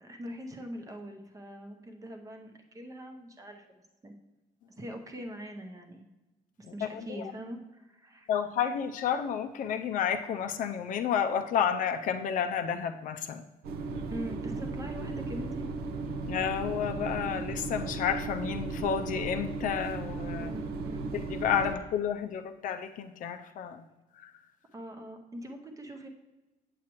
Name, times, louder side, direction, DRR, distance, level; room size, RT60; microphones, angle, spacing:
voice 1, 0.0-3.7 4.0-4.1 4.7-6.0 6.6-8.3 14.1-15.7 20.4-21.1 24.7-26.1, right 1 dB, 20° right, 4 dB, 0.8 m, -42 dB
voice 2, 6.8-7.2 8.3-13.4 16.3-20.5 21.1-23.9 24.1-24.3, left 8 dB, 55° left, 7 dB, 0.5 m, -31 dB
sound 1, 13.6-21.8, right 3 dB, 85° right, 0.7 m, -36 dB
8.4 x 7.4 x 3.0 m, 1.1 s
cardioid pair, 165°, 16 cm